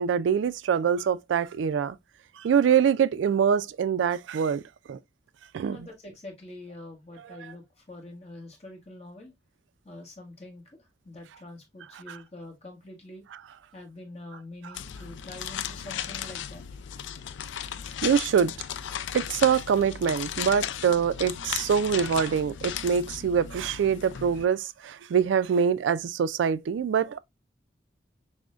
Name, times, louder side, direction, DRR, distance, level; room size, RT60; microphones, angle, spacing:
voice 1, 0.0-2.0 2.4-4.6 4.9-5.0 5.5-5.9 12.1-12.2 18.0-18.5 19.1-27.2, right 7 dB, 85° right, 0.3 m, -24 dB
voice 2, 5.7-9.3 9.8-13.2 13.7-16.6, left 2 dB, 35° left, 1.2 m, -45 dB
sound 1, 14.7-24.5, left 9 dB, 80° left, 0.3 m, -36 dB
6.0 x 2.1 x 2.4 m
head